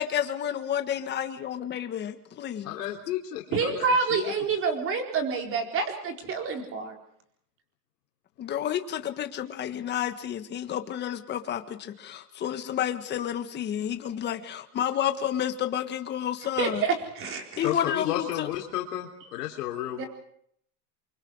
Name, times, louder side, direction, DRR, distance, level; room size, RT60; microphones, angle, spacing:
voice 1, 0.0-2.7 8.4-16.8 17.6-18.5, left 10 dB, 20° left, 8 dB, 1.6 m, -30 dB
voice 2, 2.7-3.8 4.1-4.3 17.6-20.1, left 12 dB, 75° left, 0 dB, 3.5 m, -32 dB
voice 3, 3.5-6.9 16.6-17.7 20.0-20.1, right 5 dB, 25° right, 3 dB, 4.4 m, -28 dB
28.5 x 24.5 x 4.9 m, 0.68 s
supercardioid pair, 155°, 48 cm